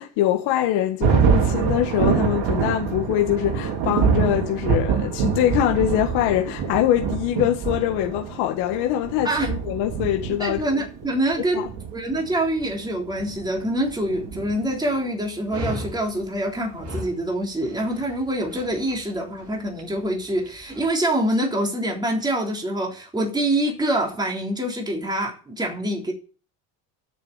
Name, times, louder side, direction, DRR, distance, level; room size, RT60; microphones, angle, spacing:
voice 1, 0.0-10.6 11.5-11.7, left 12 dB, 80° left, 1.9 m, -23 dB
Thunder, 1.0-15.0, right 6 dB, 65° right, 3.6 m, -25 dB
voice 2, 10.4-11.7 11.9-26.1, right 1 dB, 10° right, 3.5 m, -25 dB
Dog, 15.5-20.9, equal, 45° right, 5.6 m, -37 dB
9.6 x 6.9 x 8.7 m
cardioid pair, 125°, 40 cm